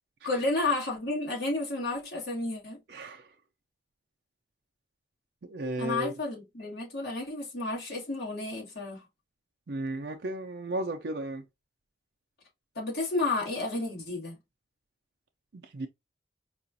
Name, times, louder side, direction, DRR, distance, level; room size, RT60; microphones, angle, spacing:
voice 1, 0.2-2.8 5.8-9.0 12.8-14.4, left 2 dB, 55° left, 2.0 m, -31 dB
voice 2, 2.9-3.3 5.4-6.1 9.7-11.4 15.5-15.9, right 1 dB, 60° right, 0.5 m, -34 dB
4.8 x 2.4 x 2.6 m
head